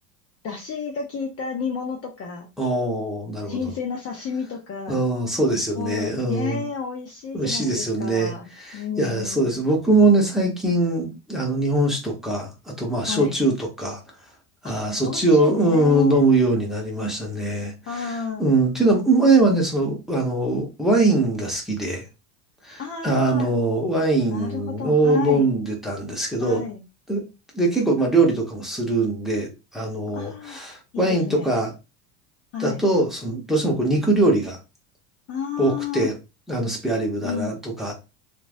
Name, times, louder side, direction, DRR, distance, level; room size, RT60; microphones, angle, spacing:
voice 1, 0.4-2.5 3.4-5.1 5.7-8.4 8.7-9.5 13.1-13.3 15.0-16.2 17.9-18.4 22.8-23.5 24.3-25.6 26.4-26.8 30.1-30.6 30.9-31.5 32.5-32.8 35.3-36.1 37.2-37.6, left 6 dB, 30° left, 1 dB, 0.6 m, -31 dB
voice 2, 2.6-3.7 4.9-6.6 7.3-8.3 8.6-12.5 12.8-14.0 14.6-22.0 22.6-26.6 27.1-27.2 27.5-31.7 32.6-34.6 35.6-36.1 36.5-37.9, right 2 dB, ahead, -1 dB, 1.0 m, -22 dB
3.0 x 2.5 x 2.5 m, 0.27 s
hypercardioid pair, 95°, 47 cm